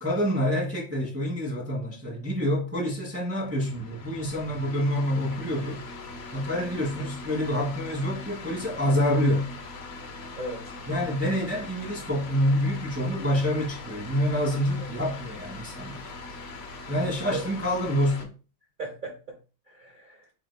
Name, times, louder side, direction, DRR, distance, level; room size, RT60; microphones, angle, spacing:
voice 1, 0.0-5.8 6.3-9.5 10.9-16.1 16.9-18.3, equal, 10° right, 0.9 m, -27 dB
sound 1, 3.4-18.3, left 2 dB, 75° left, 0.6 m, -41 dB
voice 2, 10.4-10.8 17.1-17.5 18.8-19.4 19.7-20.3, right 2 dB, 65° right, 0.4 m, -37 dB
4.6 x 3.8 x 2.2 m
omnidirectional pair, 2.1 m